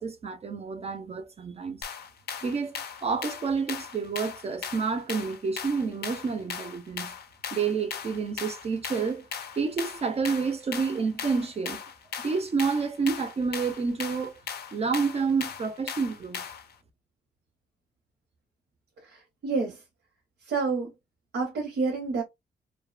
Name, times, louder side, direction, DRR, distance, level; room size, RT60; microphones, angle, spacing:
voice 1, 0.0-1.8 2.4-7.1 7.5-9.2 9.6-11.8 12.2-14.4 14.7-16.4, right 5 dB, 35° right, 0.4 m, -29 dB
sound 1, 1.8-16.7, left 7 dB, 65° left, 0.4 m, -38 dB
voice 2, 19.1-19.8 20.5-20.9 21.3-22.2, right 4 dB, 85° right, 0.8 m, -28 dB
2.6 x 2.1 x 2.3 m
cardioid pair, 115°, 18 cm